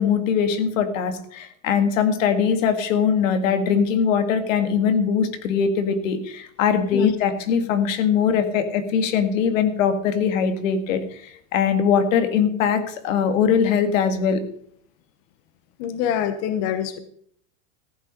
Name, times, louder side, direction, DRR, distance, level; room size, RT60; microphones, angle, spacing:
voice 1, 0.0-14.4, left 7 dB, 85° left, 8 dB, 1.9 m, -21 dB
voice 2, 15.8-17.0, left 9 dB, 40° left, 10 dB, 1.0 m, -25 dB
14.5 x 8.9 x 5.2 m, 0.64 s
supercardioid pair, 160°, 38 cm